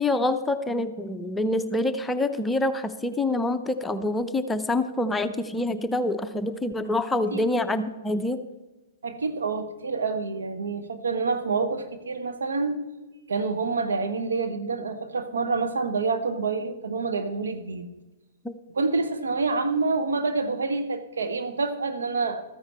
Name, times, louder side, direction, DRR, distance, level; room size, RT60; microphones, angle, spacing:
voice 1, 0.0-8.4 18.4-18.5, left 2 dB, 10° left, 9 dB, 0.7 m, -26 dB
voice 2, 9.0-12.8 13.3-17.9 18.7-22.4, right 4 dB, 75° right, 9 dB, 1.2 m, -27 dB
14.0 x 9.6 x 4.4 m, 1.1 s
hypercardioid pair, 115°, 0 cm